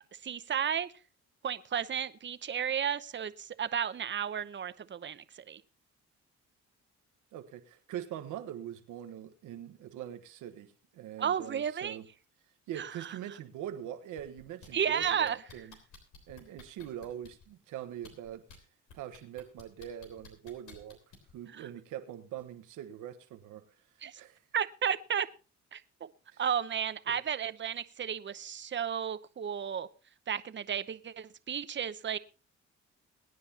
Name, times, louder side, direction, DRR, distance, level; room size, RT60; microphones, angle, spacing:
voice 1, 0.2-0.9 1.4-5.6 11.2-12.0 12.8-13.1 14.7-15.4 21.5-21.7 24.0-24.2 24.5-25.3 25.7-26.1 26.4-29.9 30.3-32.2, right 8 dB, 40° right, 0.8 m, -33 dB
voice 2, 7.3-12.1 12.7-15.8 16.3-18.4 18.9-21.0 21.3-23.7 24.2-24.4 26.3-26.4 27.1-27.2, right 11 dB, 90° right, 1.3 m, -43 dB
sound 1, 14.2-14.7 15.0-17.5 18.0-18.6 18.9-21.3 22.4-22.5, left 5 dB, 85° left, 3.6 m, -53 dB
22.5 x 9.6 x 2.9 m
cardioid pair, 90°, 30 cm